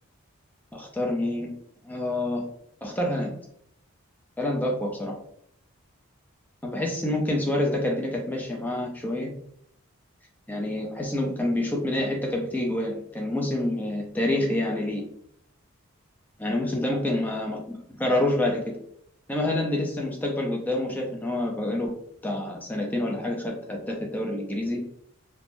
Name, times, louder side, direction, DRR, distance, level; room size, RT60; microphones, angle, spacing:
voice 1, 0.7-1.5 1.8-2.4 2.8-3.3 4.4-5.1 6.6-9.3 10.5-15.0 16.4-17.6 17.9-18.8 19.3-21.9 22.2-24.9, left 1 dB, 10° left, 0 dB, 0.4 m, -27 dB
3.3 x 2.0 x 2.5 m, 0.69 s
head